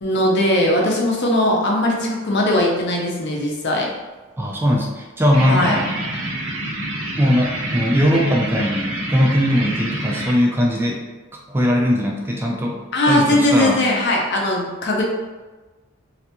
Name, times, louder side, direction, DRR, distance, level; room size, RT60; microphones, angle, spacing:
voice 1, 0.0-3.9 5.5-5.8 12.9-15.0, left 1 dB, 50° left, -1 dB, 0.6 m, -19 dB
voice 2, 4.4-5.9 7.2-11.0 11.3-12.8 13.1-13.9, equal, 10° right, -1 dB, 0.3 m, -19 dB
sound 1, 5.3-10.3, right 1 dB, 60° right, 0.7 m, -27 dB
3.2 x 2.4 x 2.9 m, 1.2 s
head